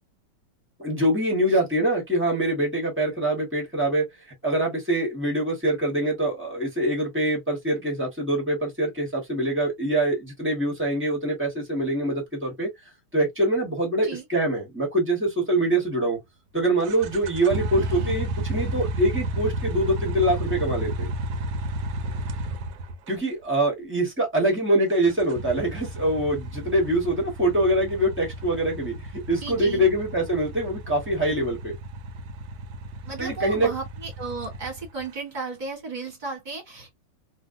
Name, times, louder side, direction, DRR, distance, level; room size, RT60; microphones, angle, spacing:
voice 1, 0.8-4.1 4.4-12.7 13.1-16.2 16.5-21.1 23.1-31.8 33.2-33.7, right 1 dB, 15° right, 0.5 m, -24 dB
sound 1, 16.8-23.2 24.9-35.0, right 1 dB, 75° right, 1.0 m, -32 dB
voice 2, 17.7-18.1 29.4-29.9 33.0-37.0, right 4 dB, 30° right, 0.9 m, -35 dB
3.2 x 2.3 x 2.5 m
omnidirectional pair, 2.3 m